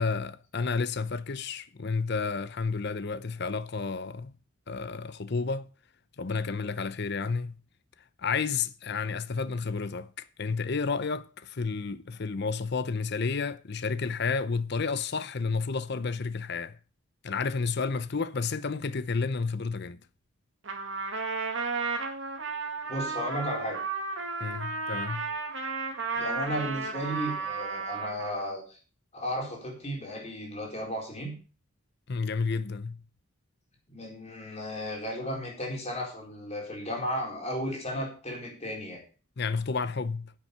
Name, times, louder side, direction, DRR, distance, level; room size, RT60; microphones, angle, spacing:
voice 1, 0.0-4.4 4.7-5.7 6.2-7.6 8.2-10.1 10.4-16.8 17.2-20.0 24.4-25.3 32.1-33.0 39.4-40.3, left 4 dB, 50° left, 0.6 m, -31 dB
Trumpet, 20.6-28.5, right 4 dB, 60° right, 2.2 m, -33 dB
voice 2, 22.9-23.8 26.2-28.8 29.1-31.4 33.9-39.0, equal, 30° left, 4.2 m, -34 dB
10.0 x 7.5 x 6.7 m
head